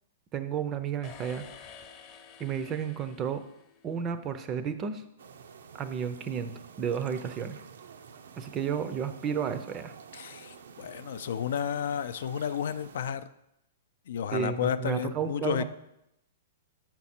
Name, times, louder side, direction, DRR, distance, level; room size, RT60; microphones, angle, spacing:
voice 1, 0.3-1.4 2.4-3.4 3.8-5.0 5.8-7.6 8.4-9.9 14.3-15.6, right 7 dB, 20° right, 11 dB, 0.5 m, -32 dB
sound 1, 1.0-4.2, left 7 dB, 25° left, 0.7 m, -50 dB
sound 2, 5.2-13.1, right 6 dB, 80° right, 0.6 m, -50 dB
voice 2, 10.1-13.3 14.1-15.6, left 8 dB, 65° left, 13 dB, 0.4 m, -32 dB
7.0 x 5.9 x 4.3 m, 0.83 s
hypercardioid pair, 160°, 0 cm